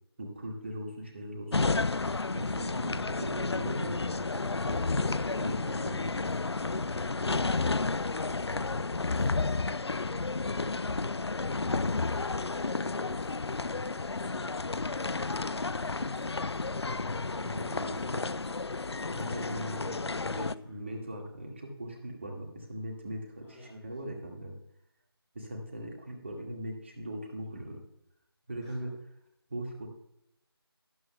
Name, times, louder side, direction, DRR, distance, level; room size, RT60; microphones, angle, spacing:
voice 1, 0.2-1.8 2.3-6.2 17.3-18.3 19.1-24.6 25.3-27.8 28.5-28.9 29.5-29.9, right 1 dB, 30° right, 0 dB, 1.9 m, -40 dB
sound 1, 1.5-20.5, left 3 dB, 90° left, 0.4 m, -31 dB
voice 2, 6.6-11.2 11.9-18.4 19.2-20.8 23.4-23.8 28.6-28.9, left 1 dB, 10° left, -7 dB, 0.9 m, -53 dB
18.5 x 7.8 x 2.3 m, 0.77 s
figure-of-eight pair, 165°, 13 cm